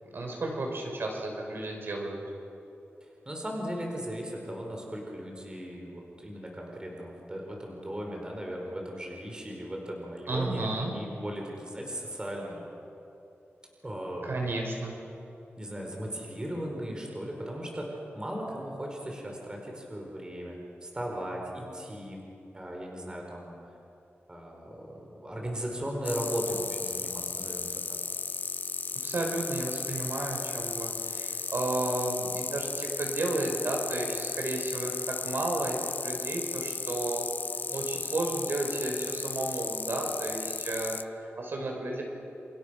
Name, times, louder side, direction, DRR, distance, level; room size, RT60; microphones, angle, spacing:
voice 1, 0.1-2.2 10.3-10.9 14.2-14.9 29.0-35.8 36.0-37.3 37.7-42.0, right 2 dB, 60° right, 1 dB, 5.7 m, -32 dB
voice 2, 3.0-12.7 13.8-14.5 15.6-22.2 22.5-23.8 24.3-28.0, equal, 20° right, 0 dB, 4.6 m, -37 dB
sound 1, 26.0-41.0, left 4 dB, 45° left, 0.8 m, -35 dB
30.0 x 29.0 x 6.4 m, 2.9 s
wide cardioid pair, 155°, 4 cm